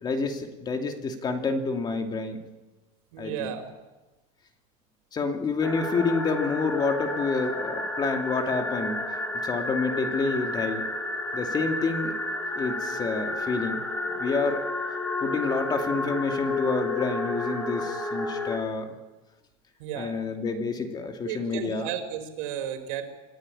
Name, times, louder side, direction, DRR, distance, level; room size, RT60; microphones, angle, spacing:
voice 1, 0.0-2.4 3.2-3.5 5.1-9.0 9.4-10.9 11.3-12.1 12.5-13.8 14.1-14.6 15.2-18.9 20.0-21.9, left 4 dB, 25° left, 5 dB, 2.6 m, -28 dB
voice 2, 3.1-3.7 19.8-20.2 21.2-23.1, right 9 dB, 85° right, 6 dB, 4.6 m, -34 dB
sound 1, 5.6-18.6, left 2 dB, 10° left, 3.4 m, -31 dB
27.5 x 15.5 x 9.9 m, 1.1 s
supercardioid pair, 145°, 17 cm